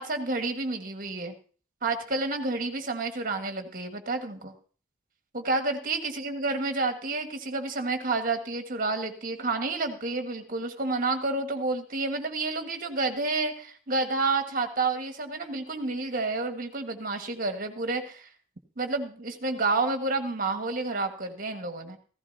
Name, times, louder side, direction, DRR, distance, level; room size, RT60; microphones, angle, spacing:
voice 1, 0.0-1.3 1.8-4.5 5.3-18.3 18.8-22.0, right 3 dB, 45° right, 6 dB, 1.5 m, -30 dB
15.5 x 15.0 x 2.8 m, 0.40 s
head